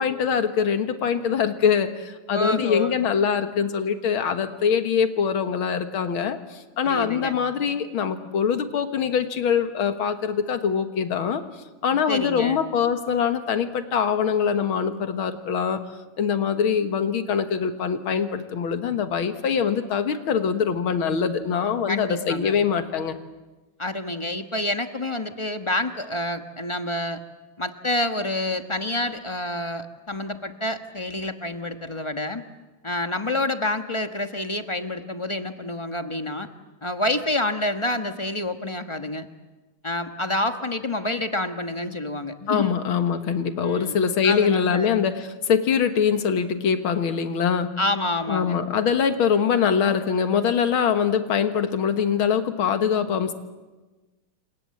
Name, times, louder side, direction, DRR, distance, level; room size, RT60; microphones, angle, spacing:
voice 1, 0.0-11.4 11.8-15.8 16.2-23.2 42.5-47.7 48.3-53.3, left 7 dB, 90° left, 8 dB, 2.3 m, -23 dB
voice 2, 2.3-3.0 6.8-7.3 12.1-12.6 21.9-22.6 23.8-27.2 27.6-32.4 32.8-36.5 36.8-39.3 39.8-42.8 43.6-44.0 44.2-44.9 47.8-48.6, left 1 dB, 20° left, 7 dB, 1.1 m, -28 dB
29.0 x 26.5 x 7.8 m, 1.2 s
omnidirectional pair, 2.2 m